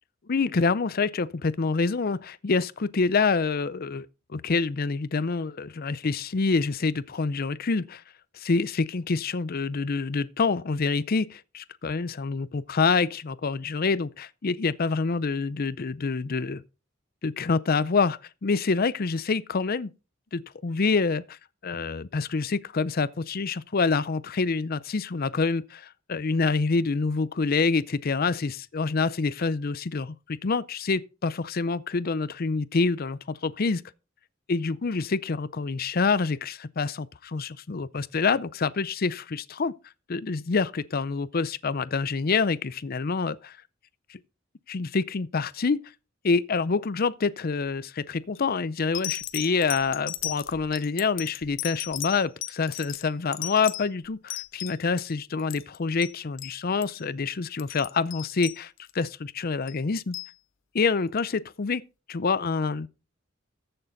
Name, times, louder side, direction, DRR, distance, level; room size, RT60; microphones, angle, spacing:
voice 1, 0.3-8.0 8.3-16.6 17.2-19.9 20.3-21.4 21.6-33.8 34.5-39.7 40.1-43.6 44.1-44.2 44.7-45.8 46.2-60.2 60.7-61.8 62.1-62.9, left 4 dB, 50° left, 0.5 m, -27 dB
sound 1, 48.1-48.4 48.9-55.1 55.4-56.1 56.4-56.6 56.8-57.0 57.4-59.0 59.7-60.3 61.2-61.3, left 15 dB, 85° left, 0.7 m, -36 dB
14.5 x 6.7 x 3.9 m
head